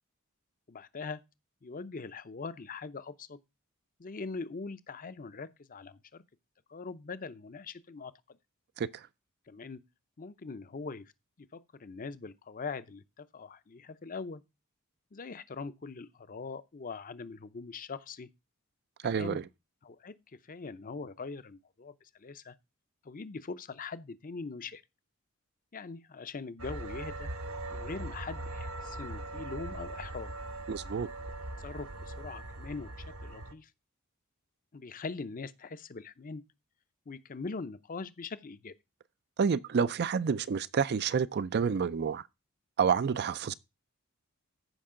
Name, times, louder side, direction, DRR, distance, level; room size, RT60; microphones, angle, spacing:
voice 1, 0.7-1.2 1.6-3.4 4.0-6.2 6.7-8.4 9.5-9.8 10.2-11.1 11.4-14.4 15.1-18.3 19.0-19.4 19.8-20.2 20.4-22.5 23.0-24.8 25.7-27.3 27.7-30.3 31.6-32.9 33.2-33.7 34.7-36.4 37.1-38.7, left 4 dB, 40° left, 0.6 m, -42 dB
voice 2, 19.0-19.4 30.7-31.1 39.4-42.2 42.8-43.5, right 6 dB, 50° right, 0.4 m, -29 dB
sound 1, 26.6-33.5, right 2 dB, 70° right, 1.1 m, -40 dB
14.5 x 5.4 x 3.7 m
head